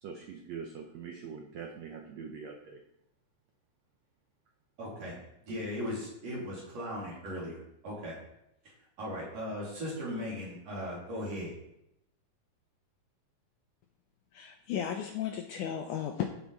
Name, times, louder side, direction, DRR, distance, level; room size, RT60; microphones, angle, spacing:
voice 1, 0.0-2.8, right 6 dB, 70° right, 2 dB, 1.6 m, -43 dB
voice 2, 4.8-5.1 5.4-8.2 9.0-11.5, equal, 45° right, -5 dB, 4.1 m, -38 dB
voice 3, 14.3-16.2, left 9 dB, 75° left, 4 dB, 1.9 m, -34 dB
14.0 x 6.0 x 4.1 m, 0.82 s
omnidirectional pair, 4.2 m